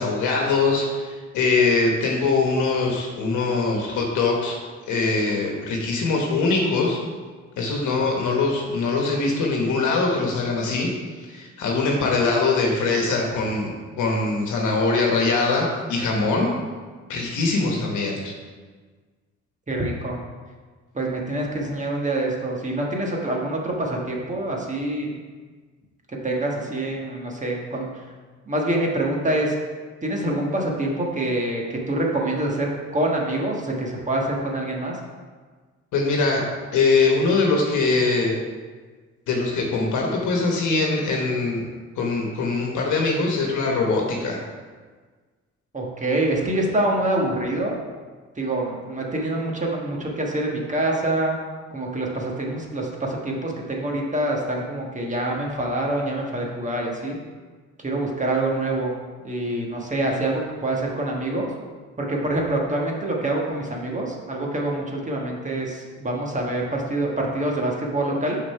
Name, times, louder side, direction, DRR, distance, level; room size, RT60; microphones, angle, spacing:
voice 1, 0.0-4.6 4.9-7.0 7.6-10.9 11.3-16.5 17.1-18.3 35.9-36.4 36.7-38.4 39.3-41.7 42.0-44.4, left 3 dB, 80° left, 0 dB, 1.1 m, -22 dB
voice 2, 19.7-20.2 20.9-25.2 26.2-27.8 28.5-29.5 30.0-35.0 45.7-47.8 48.4-51.3 51.7-57.2 57.8-58.9 59.2-61.5 62.0-68.4, right 1 dB, 25° right, -1 dB, 1.4 m, -25 dB
6.2 x 4.1 x 5.6 m, 1.4 s
cardioid pair, 90°, 30 cm